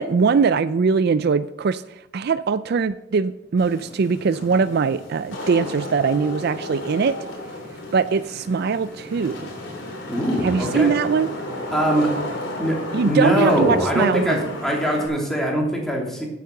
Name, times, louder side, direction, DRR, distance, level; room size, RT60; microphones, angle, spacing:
voice 1, 0.0-7.1 7.9-9.4 10.4-11.3 12.9-14.5, right 5 dB, 55° right, 14 dB, 0.4 m, -21 dB
Wind / Rain, 3.6-15.1, left 1 dB, 65° left, 3.4 m, -33 dB
voice 2, 10.1-10.9 11.7-12.1 12.6-16.3, equal, ahead, -2 dB, 2.9 m, -22 dB
10.5 x 8.4 x 6.7 m, 0.93 s
head